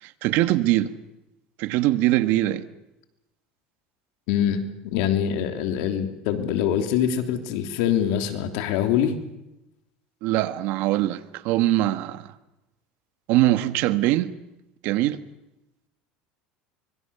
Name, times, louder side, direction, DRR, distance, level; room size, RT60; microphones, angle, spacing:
voice 1, 0.0-0.9 1.6-2.6 10.2-12.3 13.3-14.3 14.8-15.2, right 15 dB, 65° right, 1.5 m, -22 dB
voice 2, 4.3-9.2, left 9 dB, 80° left, 3.1 m, -24 dB
24.5 x 22.5 x 7.0 m
supercardioid pair, 130°, 4 cm